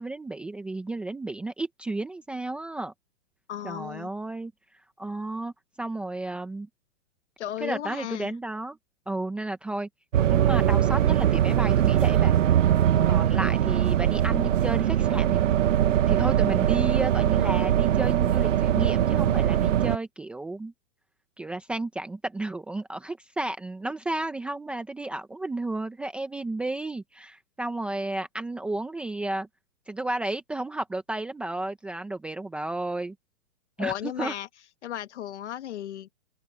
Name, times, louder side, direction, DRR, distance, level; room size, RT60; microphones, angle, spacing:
voice 1, 0.0-2.9 3.6-4.5 5.0-5.5 5.8-6.7 7.6-8.8 9.1-9.9 10.2-12.3 13.1-15.5 16.0-20.7 21.4-29.5 29.9-33.1 33.8-34.3, right 2 dB, 5° right, 0.7 m, -32 dB
voice 2, 3.5-4.1 7.4-8.3 13.0-13.3 33.8-34.5 34.8-36.1, left 11 dB, 65° left, 1.9 m, -35 dB
sound 1, 10.1-20.0, right 11 dB, 85° right, 1.0 m, -22 dB
open air
hypercardioid pair, 165°, 37 cm